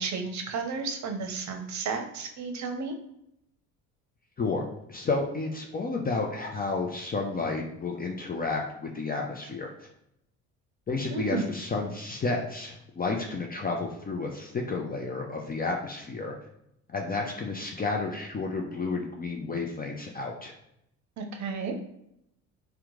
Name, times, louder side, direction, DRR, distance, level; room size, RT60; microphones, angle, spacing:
voice 1, 0.0-2.9 11.1-11.5 21.2-21.7, right 4 dB, 55° right, 5 dB, 0.7 m, -32 dB
voice 2, 4.4-9.9 10.9-16.3 16.9-20.5, left 3 dB, 25° left, 1 dB, 0.5 m, -31 dB
2.9 x 2.2 x 3.7 m, 0.80 s
supercardioid pair, 75°, 35 cm